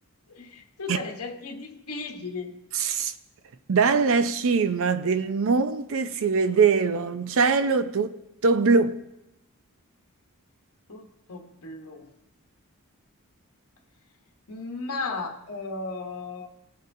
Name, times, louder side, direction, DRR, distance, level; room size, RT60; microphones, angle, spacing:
voice 1, 0.3-2.5 10.9-12.1 14.5-16.5, left 3 dB, 70° left, 1.2 m, -35 dB
voice 2, 2.7-3.1 3.7-8.2 8.4-9.0, right 5 dB, 65° right, 0.5 m, -22 dB
18.0 x 6.5 x 2.7 m
head